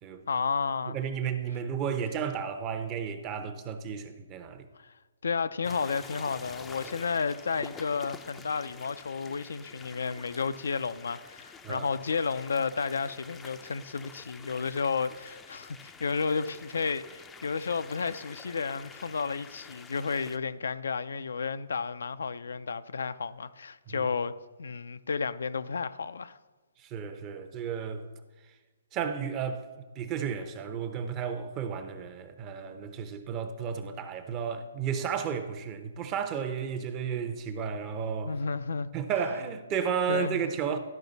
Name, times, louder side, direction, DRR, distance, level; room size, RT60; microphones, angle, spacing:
voice 1, 0.3-1.0 4.8-4.9 5.2-24.3 24.6-26.4 38.3-38.9 40.1-40.4, left 5 dB, 75° left, 0.4 m, -32 dB
voice 2, 0.9-4.6 11.6-11.9 23.9-24.1 26.8-28.1 28.9-29.6 30.0-38.3 38.9-40.8, right 7 dB, 25° right, 0.7 m, -33 dB
sound 1, 5.6-20.4, left 5 dB, 10° left, 0.4 m, -48 dB
12.0 x 4.9 x 4.0 m
hypercardioid pair, 145°, 0 cm